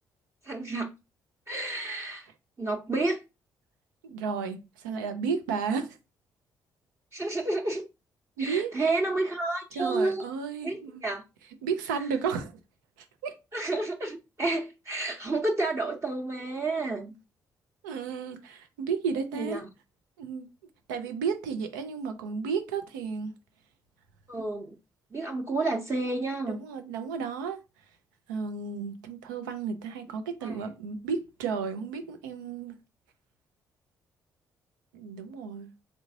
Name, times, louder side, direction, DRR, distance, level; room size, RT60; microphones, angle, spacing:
voice 1, 0.4-0.9 1.5-2.3 2.6-3.2 7.1-7.8 8.4-10.2 10.6-11.2 13.5-17.1 19.3-19.7 24.3-24.8 25.1-26.6 30.4-30.6, right 2 dB, 25° right, 0.8 m, -30 dB
voice 2, 4.0-4.6 4.8-5.9 8.4-8.7 9.8-11.1 11.6-12.5 13.2-13.4 17.8-19.6 20.2-20.5 20.9-23.3 26.5-27.6 28.3-32.8 34.9-35.7, right 6 dB, 80° right, 0.5 m, -32 dB
3.8 x 3.4 x 2.7 m
hypercardioid pair, 45°, 10 cm